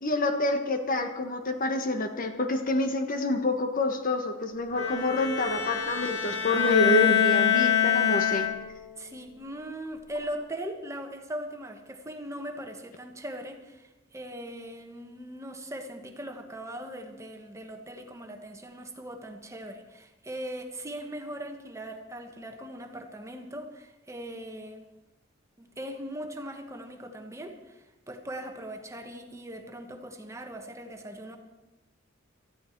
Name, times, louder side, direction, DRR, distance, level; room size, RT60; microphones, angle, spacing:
voice 1, 0.0-8.5, left 2 dB, 45° left, 6 dB, 1.4 m, -27 dB
Bowed string instrument, 4.7-8.9, left 8 dB, 70° left, 1.9 m, -25 dB
voice 2, 9.0-24.8 25.6-31.4, right 1 dB, 15° right, 4 dB, 1.4 m, -40 dB
19.0 x 13.5 x 4.7 m, 1.0 s
head